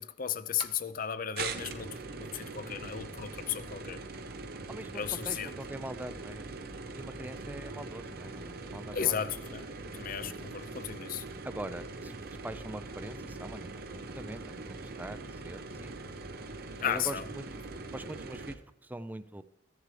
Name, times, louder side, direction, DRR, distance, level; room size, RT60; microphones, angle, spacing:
voice 1, 0.0-4.0 4.9-5.5 8.9-11.2 16.8-17.2, left 9 dB, 50° left, 0.6 m, -35 dB
sound 1, 0.6-0.7 1.4-18.6, right 3 dB, 55° right, 0.9 m, -42 dB
voice 2, 4.7-6.4 6.9-9.4 10.2-10.4 11.4-16.0 16.8-17.5 17.9-19.4, right 1 dB, 10° right, 0.4 m, -43 dB
15.0 x 10.5 x 3.2 m
head